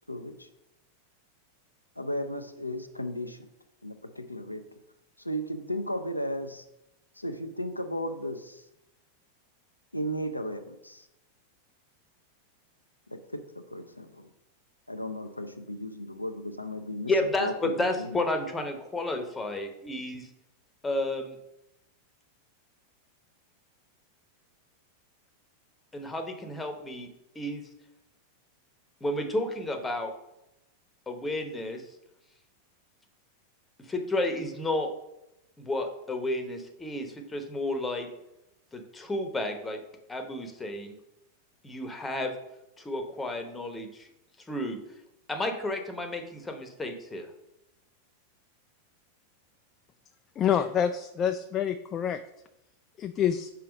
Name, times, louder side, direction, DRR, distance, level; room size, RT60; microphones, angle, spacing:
voice 1, 0.1-0.5 2.0-3.5 3.8-4.6 5.2-6.6 7.2-8.6 9.9-11.1 13.1-14.3 14.9-17.1 17.4-18.2, equal, 85° left, 7 dB, 0.5 m, -35 dB
voice 2, 17.1-20.3 20.8-21.4 25.9-27.1 27.3-27.6 29.0-30.1 31.1-31.8 33.9-34.9 35.6-38.1 38.7-39.8 40.1-41.0 41.6-42.3 42.8-44.1 44.5-44.8 45.3-47.3, left 1 dB, 10° left, 6 dB, 1.0 m, -31 dB
voice 3, 50.4-52.2 53.0-53.5, left 9 dB, 30° left, 8 dB, 0.3 m, -27 dB
5.7 x 4.7 x 5.1 m, 0.88 s
figure-of-eight pair, 90°, 0 cm